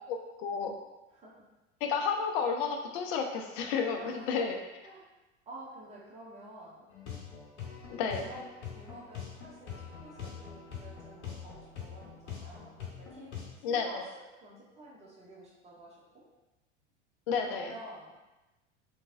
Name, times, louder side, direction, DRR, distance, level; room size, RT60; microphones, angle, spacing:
voice 1, 0.1-0.7 1.8-4.5 7.9-8.3 13.6-14.0 17.3-17.7, left 6 dB, 50° left, 4 dB, 0.6 m, -31 dB
voice 2, 4.0-4.4 4.8-5.1 5.5-6.8 8.0-8.4 8.7-12.7 13.0-13.3 13.6-16.2 17.4-18.2, right 1 dB, 20° right, -6 dB, 1.1 m, -49 dB
sound 1, 6.9-13.5, left 7 dB, 70° left, 0.9 m, -44 dB
3.2 x 3.2 x 2.6 m, 1.1 s
figure-of-eight pair, 85°, 36 cm